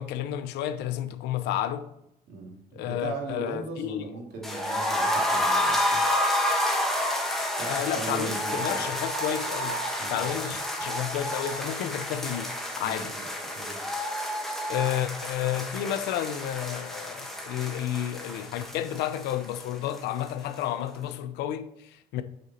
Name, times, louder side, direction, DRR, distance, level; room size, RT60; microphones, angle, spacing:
voice 1, 0.0-1.9 2.7-4.0 7.7-9.8 10.1-13.2 14.7-22.2, left 11 dB, 85° left, 0.7 m, -31 dB
voice 2, 2.3-6.0 7.6-8.8 10.0-10.3 12.8-13.3 13.5-13.8, right 3 dB, 75° right, 2.7 m, -38 dB
sound 1, 4.4-20.3 20.5-20.6 20.9-21.0, left 1 dB, ahead, 1.4 m, -30 dB
8.0 x 5.0 x 4.3 m
cardioid pair, 110°, 17 cm